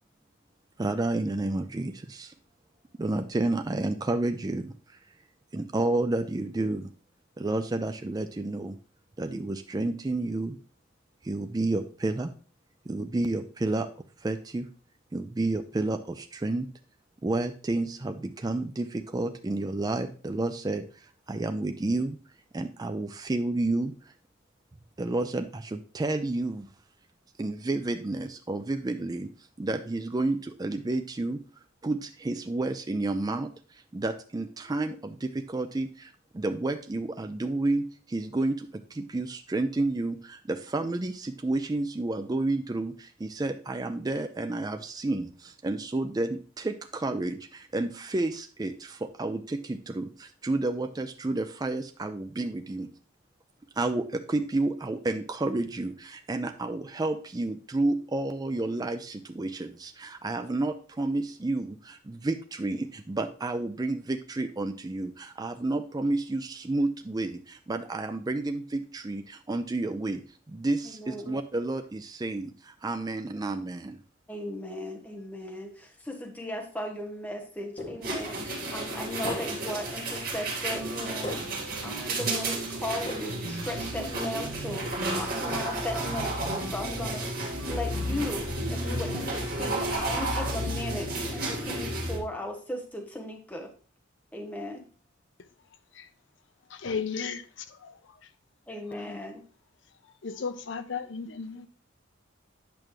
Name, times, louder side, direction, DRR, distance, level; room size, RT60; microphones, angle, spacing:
voice 1, 0.8-2.3 3.0-4.7 5.5-6.9 7.4-8.8 9.2-10.6 11.2-12.3 12.9-13.9 14.2-14.7 15.1-16.7 17.2-22.2 22.5-24.1 25.0-26.7 27.4-29.3 29.6-31.4 31.8-52.9 53.8-70.2 70.5-74.0, right 2 dB, 20° right, 0.4 m, -30 dB
voice 2, 70.8-71.4 74.3-81.4 81.8-93.7 94.3-94.8 98.7-99.4, left 1 dB, 10° left, 1.0 m, -37 dB
sound 1, 77.8-78.4 79.2-79.9 81.2-81.9 83.0-83.7, left 1 dB, 30° left, 2.0 m, -38 dB
sound 2, 78.0-92.2, right 1 dB, 50° right, 1.8 m, -32 dB
sound 3, 80.7-91.0, right 1 dB, 80° right, 0.9 m, -40 dB
voice 3, 96.7-98.0 99.0-99.2 100.2-101.7, left 5 dB, 65° left, 0.6 m, -35 dB
8.7 x 6.2 x 3.1 m
head